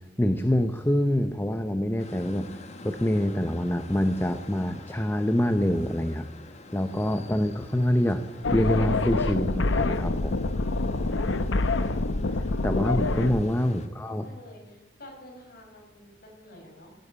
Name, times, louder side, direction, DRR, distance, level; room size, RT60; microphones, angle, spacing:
voice 1, 0.2-2.5 2.8-6.3 6.7-8.2 8.5-10.4 12.3-14.2, left 1 dB, 10° left, 8 dB, 0.7 m, -25 dB
sound 1, 2.0-13.9, left 2 dB, 35° left, 1.2 m, -46 dB
sound 2, 8.4-13.4, left 2 dB, 85° left, 0.9 m, -26 dB
voice 2, 13.6-16.9, left 1 dB, 55° left, 0 dB, 5.3 m, -49 dB
16.5 x 9.6 x 8.7 m, 1.0 s
head